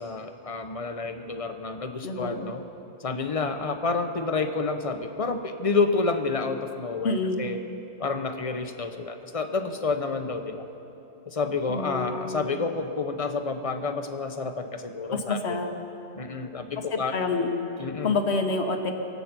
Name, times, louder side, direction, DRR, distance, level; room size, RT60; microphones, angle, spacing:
voice 1, 0.0-2.6 3.0-7.6 8.0-10.6 11.3-15.4 16.1-17.1 17.8-18.1, left 4 dB, 35° left, 7 dB, 0.8 m, -29 dB
voice 2, 2.0-2.5 7.0-7.5 11.7-12.5 15.1-15.7 16.9-17.6 18.0-18.9, left 3 dB, 80° left, 5 dB, 1.4 m, -28 dB
23.5 x 8.2 x 6.0 m, 2.9 s
omnidirectional pair, 1.1 m